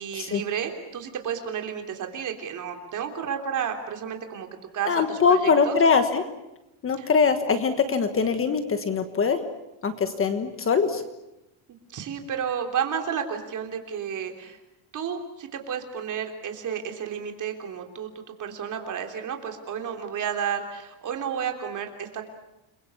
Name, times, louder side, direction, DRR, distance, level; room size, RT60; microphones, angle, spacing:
voice 1, 0.0-4.5 4.7-5.8 7.0-7.1 11.9-14.6 14.9-22.2, right 8 dB, 35° right, 4 dB, 3.4 m, -31 dB
voice 2, 4.9-6.2 6.8-9.4 9.8-11.0, left 5 dB, 25° left, 8 dB, 1.4 m, -22 dB
30.0 x 22.5 x 7.2 m, 0.92 s
cardioid pair, 180°, 50 cm